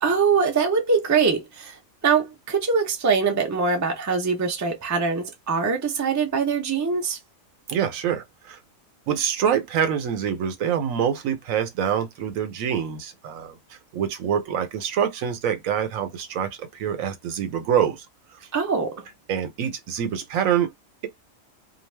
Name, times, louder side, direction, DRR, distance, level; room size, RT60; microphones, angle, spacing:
voice 1, 0.0-1.8 2.0-7.2 18.5-19.0, right 5 dB, 25° right, 0.4 m, -23 dB
voice 2, 7.7-8.6 9.1-18.1 19.3-20.7, right 8 dB, 85° right, 1.1 m, -25 dB
2.4 x 2.3 x 3.2 m
omnidirectional pair, 1.4 m